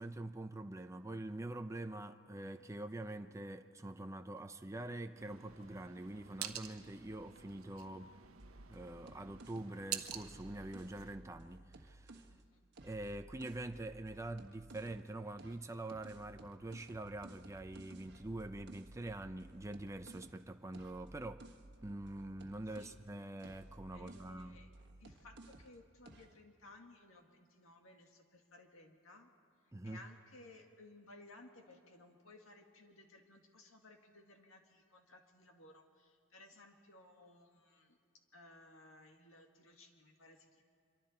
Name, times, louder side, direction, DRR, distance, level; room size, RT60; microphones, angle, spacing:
voice 1, 0.0-8.1 8.7-12.3 12.8-21.5 21.8-24.6 29.7-30.0, right 1 dB, 15° right, 0.6 m, -45 dB
sound 1, 5.1-11.2, right 10 dB, 90° right, 1.0 m, -48 dB
sound 2, 8.4-12.4 12.7-15.1 15.4-23.1 23.4-25.8 26.1-26.4, right 2 dB, 55° right, 1.4 m, -57 dB
voice 2, 12.3-12.6 22.7-23.0 23.9-24.7 25.0-29.3 29.6-38.0 38.3-40.6, left 2 dB, 75° left, 2.1 m, -59 dB
25.5 x 23.5 x 4.4 m
head